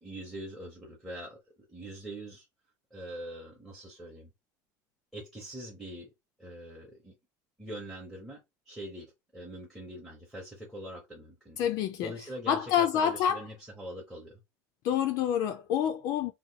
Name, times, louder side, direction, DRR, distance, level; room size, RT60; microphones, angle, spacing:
voice 1, 0.0-2.5 2.9-4.3 5.1-6.1 6.4-7.1 7.6-11.7 12.0-14.4, right 1 dB, 5° right, 0.7 m, -43 dB
voice 2, 11.6-12.1 12.5-13.4 14.8-16.3, left 9 dB, 45° left, 0.3 m, -27 dB
2.8 x 2.2 x 3.9 m
cardioid pair, 175°, 8 cm